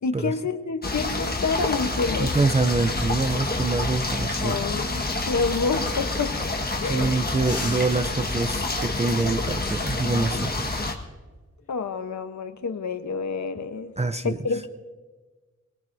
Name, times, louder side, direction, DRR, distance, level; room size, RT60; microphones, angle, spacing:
voice 1, 0.0-2.3 4.4-6.4 6.8-7.2 11.7-13.9 14.2-14.7, left 4 dB, 75° left, 8 dB, 1.0 m, -28 dB
sound 1, 0.8-10.9, left 2 dB, 35° left, 1.5 m, -28 dB
voice 2, 2.2-4.6 6.8-10.9 14.0-14.4, right 3 dB, 25° right, 9 dB, 0.5 m, -25 dB
sound 2, 6.0-7.0 7.4-9.1 11.6-11.9 13.3-13.8, left 3 dB, 50° left, 2.2 m, -41 dB
23.0 x 20.0 x 2.7 m, 1.3 s
wide cardioid pair, 110°, 29 cm